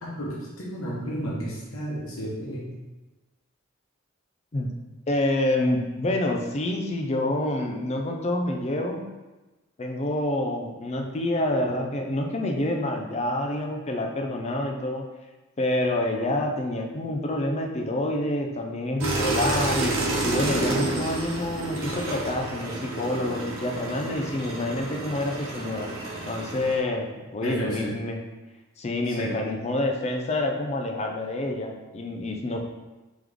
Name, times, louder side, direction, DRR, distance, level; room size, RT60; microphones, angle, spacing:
voice 1, 0.0-2.6 27.4-27.9 29.2-29.4, equal, 85° left, -5 dB, 1.0 m, -32 dB
voice 2, 5.1-9.0 9.8-15.0 15.6-19.9 20.2-25.9 26.3-28.2 28.8-32.6, left 1 dB, 30° left, 2 dB, 0.5 m, -27 dB
sound 1, 19.0-26.8, right 2 dB, 80° right, 1.0 m, -30 dB
3.4 x 3.1 x 3.8 m, 1.1 s
head